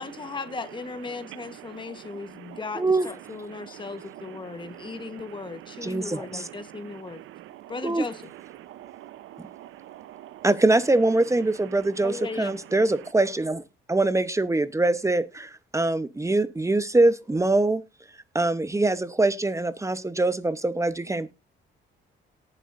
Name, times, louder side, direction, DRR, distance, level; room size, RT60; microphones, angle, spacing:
voice 1, 0.0-7.2 7.7-8.2 12.0-12.6, left 4 dB, 25° left, 1.3 m, -37 dB
voice 2, 1.1-2.6 3.5-7.8 8.6-10.5, right 14 dB, 85° right, 0.8 m, -45 dB
voice 3, 2.8-3.1 5.8-6.5 7.8-8.0 10.4-13.6 13.9-17.8 18.3-21.3, right 2 dB, 15° right, 0.9 m, -23 dB
18.5 x 7.6 x 2.6 m
cardioid pair, 90°, 20 cm